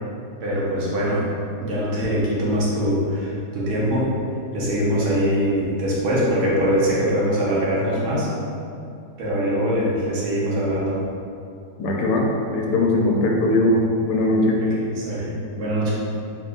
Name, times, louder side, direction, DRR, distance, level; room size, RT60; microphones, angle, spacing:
voice 1, 0.4-1.3 1.6-4.1 4.5-8.3 9.2-11.0 14.6-15.9, equal, 70° right, -6 dB, 1.4 m, -23 dB
voice 2, 11.8-14.6, left 1 dB, 90° left, -1 dB, 1.2 m, -20 dB
4.1 x 3.5 x 2.2 m, 2.5 s
omnidirectional pair, 1.8 m